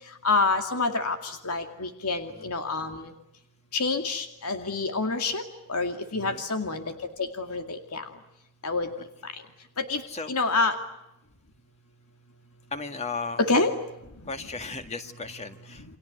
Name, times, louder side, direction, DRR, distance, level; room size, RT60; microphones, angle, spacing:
voice 1, 0.2-3.1 3.7-5.4 5.7-6.8 7.2-8.0 8.6-8.9 9.8-10.0 10.3-10.8 13.4-13.7, left 3 dB, 85° left, 6 dB, 2.3 m, -27 dB
voice 2, 6.1-6.4 10.1-10.3 12.7-13.4 14.2-15.8, left 4 dB, 30° left, 7 dB, 2.1 m, -36 dB
30.0 x 25.0 x 8.1 m, 0.87 s
head